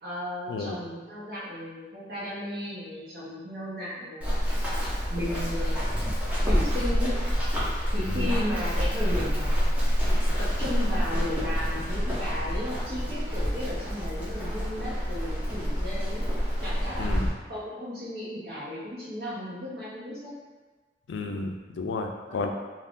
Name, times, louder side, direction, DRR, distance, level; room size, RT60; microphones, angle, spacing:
voice 1, 0.0-4.5 5.1-5.9 6.4-7.2 7.9-9.5 10.4-16.3 16.6-17.1 17.5-20.3 22.3-22.5, left 1 dB, 60° right, -9 dB, 0.8 m, -35 dB
Run, 4.2-17.3, equal, 10° right, 0.5 m, -27 dB
voice 2, 8.0-8.4 17.0-17.3 21.1-22.5, left 3 dB, 85° left, 4 dB, 0.4 m, -32 dB
2.4 x 2.4 x 3.6 m, 1.3 s
head